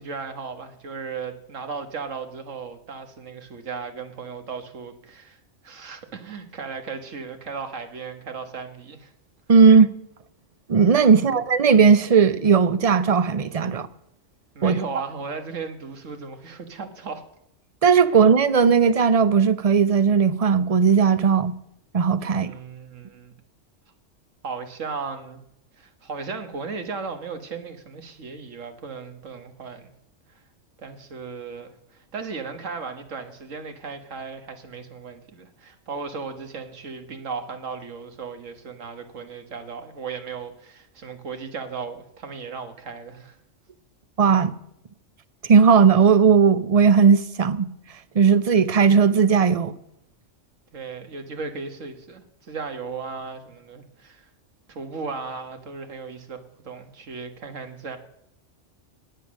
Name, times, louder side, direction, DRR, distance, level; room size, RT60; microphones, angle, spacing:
voice 1, 0.0-5.4 5.6-9.1 11.0-11.2 14.6-17.2 22.2-23.3 24.4-25.4 25.8-29.9 30.3-30.4 30.8-43.4 50.7-54.3 54.7-58.0, right 5 dB, 90° right, 1.8 m, -36 dB
voice 2, 9.5-9.9 10.7-13.9 14.6-14.8 17.8-21.5 21.9-22.5 44.2-44.5 45.5-47.7 48.2-49.7, right 6 dB, 40° right, 0.6 m, -17 dB
19.0 x 8.7 x 6.3 m
omnidirectional pair, 1.3 m